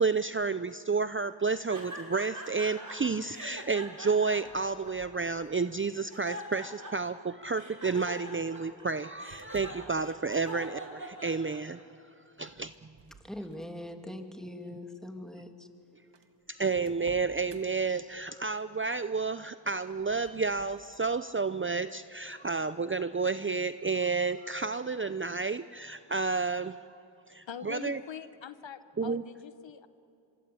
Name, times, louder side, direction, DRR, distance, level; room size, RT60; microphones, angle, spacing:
voice 1, 0.0-11.8 12.4-12.7 16.5-26.7 27.3-28.0 29.0-29.2, right 4 dB, 25° right, 12 dB, 0.6 m, -31 dB
sound 1, 1.7-3.0 3.3-5.4 5.9-7.2 7.5-11.8, right 1 dB, 45° right, 6.2 m, -43 dB
sound 2, 4.3-5.8 6.4-6.9 8.0-9.9 12.4-13.9 14.4-14.6 15.4-15.5 15.7-15.8 16.1-17.6 19.8-21.1, right 4 dB, 70° right, 1.7 m, -56 dB
voice 2, 13.3-15.7, left 1 dB, ahead, 4 dB, 2.8 m, -42 dB
voice 3, 27.5-29.9, left 8 dB, 75° left, 12 dB, 1.0 m, -43 dB
25.5 x 24.0 x 8.5 m, 2.8 s
cardioid pair, 40°, 45 cm